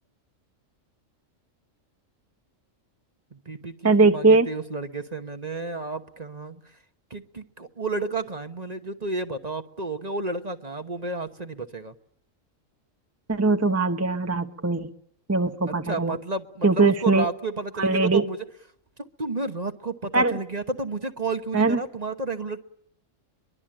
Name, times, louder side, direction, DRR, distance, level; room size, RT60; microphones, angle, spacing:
voice 1, 3.3-6.6 7.1-11.9 15.7-18.4 19.0-22.6, right 3 dB, 35° right, 8 dB, 1.2 m, -32 dB
voice 2, 3.8-4.5 13.3-14.9 15.3-16.2 16.6-17.2 17.8-18.3 20.1-20.4 21.5-21.8, right 3 dB, 15° right, 6 dB, 0.9 m, -21 dB
23.5 x 23.0 x 8.9 m, 0.69 s
omnidirectional pair, 1.3 m